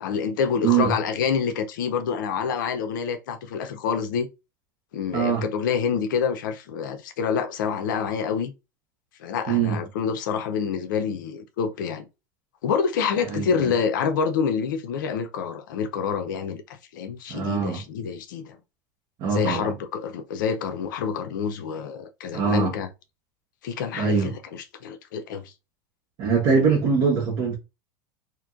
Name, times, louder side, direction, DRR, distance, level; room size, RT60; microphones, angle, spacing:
voice 1, 0.0-4.3 4.9-8.5 9.2-12.1 12.6-18.6 19.3-22.9 23.6-25.5, left 6 dB, 85° left, 0.6 m, -27 dB
voice 2, 5.1-5.4 9.5-9.8 13.3-13.5 17.3-17.8 19.2-19.7 22.3-22.7 23.9-24.3 26.2-27.6, right 6 dB, 55° right, 1.1 m, -22 dB
2.9 x 2.6 x 2.5 m
supercardioid pair, 115°, 10 cm